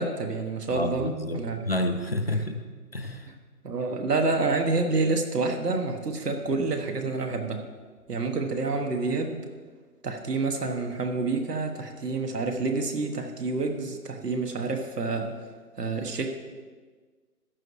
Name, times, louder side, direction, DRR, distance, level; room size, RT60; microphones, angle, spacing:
voice 1, 0.0-1.6 3.3-3.4 3.6-7.6 8.1-9.4 10.0-15.3 15.8-16.3, right 3 dB, 75° right, 4 dB, 1.5 m, -28 dB
voice 2, 0.7-3.3, left 1 dB, 40° left, 7 dB, 0.6 m, -30 dB
14.0 x 9.7 x 3.2 m, 1.5 s
hypercardioid pair, 180°, 48 cm